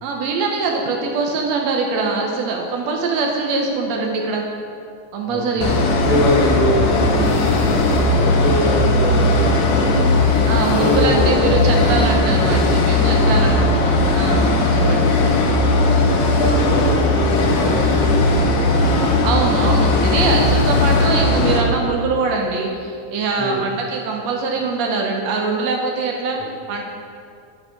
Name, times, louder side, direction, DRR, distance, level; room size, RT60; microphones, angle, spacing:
voice 1, 0.0-4.5 5.1-5.8 10.5-15.1 19.2-26.4 26.7-26.8, right 4 dB, 70° right, 1 dB, 1.8 m, -23 dB
voice 2, 5.2-5.6 6.0-10.1 10.7-11.7 13.1-13.4 14.6-15.2 15.9-16.1 16.4-18.3 20.3-20.9 23.3-23.6, left 1 dB, 15° left, -7 dB, 1.6 m, -24 dB
sound 1, 5.6-21.6, left 2 dB, 75° left, 2.1 m, -17 dB
11.5 x 4.7 x 5.0 m, 2.4 s
omnidirectional pair, 3.4 m